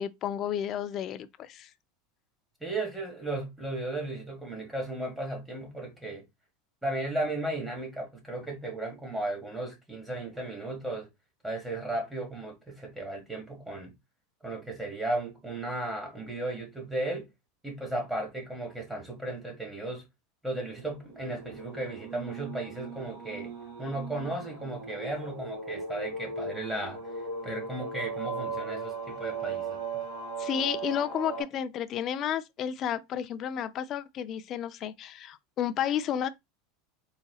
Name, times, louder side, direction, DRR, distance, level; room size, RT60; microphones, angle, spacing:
voice 1, 0.0-1.7 30.4-36.3, left 9 dB, 35° left, 0.4 m, -32 dB
voice 2, 2.6-6.2 6.8-11.1 11.4-13.9 14.4-17.3 17.6-20.1 20.4-23.5 23.8-27.1 27.4-30.0, right 2 dB, 5° right, 1.5 m, -35 dB
sound 1, 21.1-31.4, right 4 dB, 90° right, 2.5 m, -38 dB
4.1 x 3.9 x 2.3 m
supercardioid pair, 150°, 0 cm